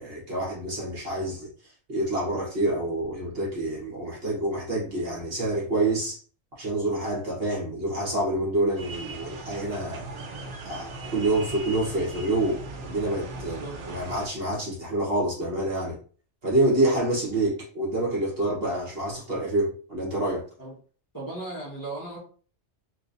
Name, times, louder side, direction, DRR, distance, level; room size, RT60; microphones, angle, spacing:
voice 1, 0.0-1.5 1.9-6.2 6.6-10.0 10.6-16.0 16.4-20.4, right 1 dB, 55° right, -5 dB, 1.5 m, -27 dB
sound 1, 8.8-14.3, right 2 dB, 80° right, 1.1 m, -38 dB
voice 2, 13.3-13.8 20.6-20.7 21.1-22.2, right 2 dB, 15° left, -7 dB, 1.2 m, -37 dB
3.1 x 2.9 x 2.6 m, 0.41 s
omnidirectional pair, 1.2 m